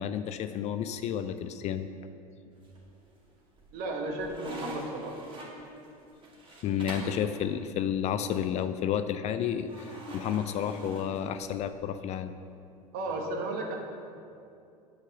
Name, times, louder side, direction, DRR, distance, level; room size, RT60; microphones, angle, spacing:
voice 1, 0.0-1.9 6.6-12.3, left 9 dB, 35° left, 11 dB, 0.4 m, -31 dB
sound 1, 2.6-3.1 3.6-7.2 9.7-11.7, right 1 dB, 25° right, 2.4 m, -44 dB
voice 2, 3.7-5.2 12.9-13.8, right 2 dB, 50° right, 2 dB, 1.6 m, -34 dB
8.6 x 5.7 x 7.0 m, 2.5 s
figure-of-eight pair, 75°, 19 cm